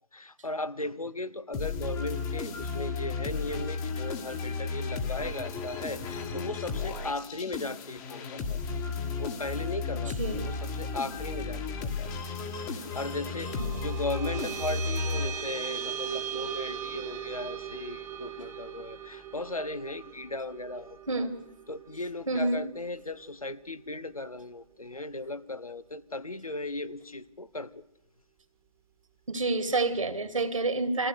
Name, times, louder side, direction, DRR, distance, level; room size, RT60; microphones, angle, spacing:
voice 1, 0.1-8.6 9.2-10.1 10.4-12.1 12.6-21.3 21.7-27.8, left 2 dB, 85° left, 1.1 m, -37 dB
sound 1, 1.5-15.8, left 4 dB, 20° left, 1.6 m, -34 dB
sound 2, 12.6-23.3, right 9 dB, 15° right, 1.5 m, -39 dB
voice 2, 21.1-21.4 22.3-22.6 29.3-31.1, right 2 dB, 70° right, 2.5 m, -28 dB
24.0 x 15.0 x 8.2 m
figure-of-eight pair, 135°, 18 cm